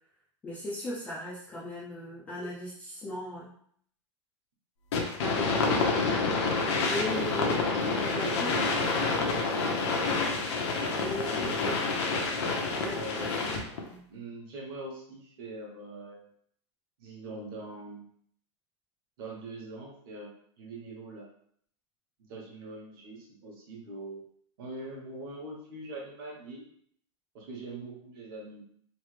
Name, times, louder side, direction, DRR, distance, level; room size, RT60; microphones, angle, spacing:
voice 1, 0.4-3.6 5.2-6.1 6.8-7.6 7.9-8.5 11.0-11.7 12.7-13.3 13.9-14.0, left 1 dB, 10° left, -7 dB, 0.3 m, -38 dB
sound 1, 4.9-13.8, left 3 dB, 65° left, 0.7 m, -28 dB
voice 2, 7.0-7.5 7.8-9.7 11.1-11.9 13.0-13.5 14.1-16.2 17.0-18.1 19.2-21.3 22.2-24.2 24.6-26.7 27.3-28.6, right 2 dB, 50° right, -2 dB, 1.1 m, -42 dB
3.2 x 2.1 x 3.2 m, 0.63 s
supercardioid pair, 170°, 16 cm